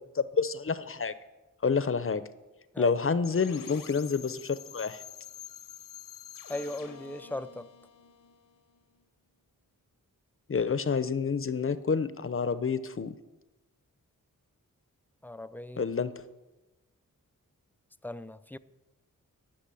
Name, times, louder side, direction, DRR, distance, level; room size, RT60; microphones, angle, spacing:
voice 1, 0.1-1.1 1.6-2.3 2.8-5.0 10.5-13.1 15.8-16.1, left 5 dB, 40° left, 0.7 m, -28 dB
sound 1, 3.2-9.0, left 8 dB, 75° left, 0.9 m, -47 dB
voice 2, 6.5-7.7 15.2-15.8 18.0-18.6, left 1 dB, 5° left, 0.3 m, -38 dB
11.5 x 6.1 x 7.6 m
wide cardioid pair, 70°, 33 cm